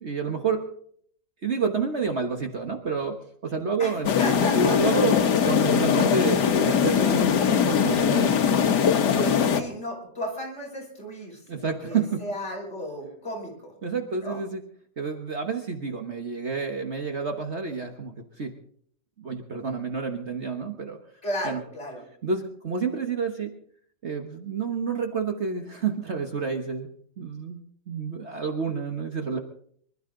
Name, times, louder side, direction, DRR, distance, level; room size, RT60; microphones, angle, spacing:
voice 1, 0.0-0.6 1.4-3.2 3.4-4.1 4.5-8.7 9.2-9.4 11.5-12.2 13.8-14.6 15.0-18.5 19.2-21.0 21.4-21.6 22.2-23.6 24.0-26.9 27.2-29.4, right 5 dB, 45° right, 4 dB, 1.4 m, -29 dB
voice 2, 3.8-5.2 9.5-13.7 14.2-14.4 21.2-22.0, equal, 40° left, -1 dB, 5.6 m, -34 dB
sound 1, 4.0-9.6, left 7 dB, 80° left, 1.8 m, -21 dB
24.5 x 12.5 x 3.8 m, 0.62 s
omnidirectional pair, 1.7 m